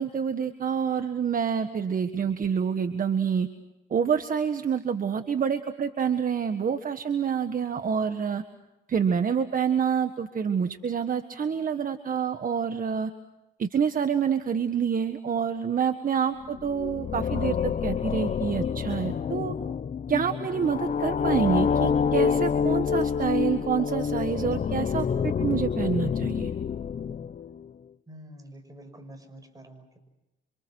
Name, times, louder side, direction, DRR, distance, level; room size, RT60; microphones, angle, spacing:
voice 1, 0.0-3.5 3.9-8.4 8.9-13.1 13.6-19.5 20.1-26.5, right 7 dB, 45° right, 8 dB, 1.5 m, -27 dB
sound 1, 16.5-27.7, left 6 dB, 40° left, 0.8 m, -27 dB
voice 2, 28.1-30.0, right 1 dB, 20° right, 7 dB, 6.2 m, -47 dB
28.0 x 26.5 x 6.3 m, 0.97 s
cardioid pair, 90°, 20 cm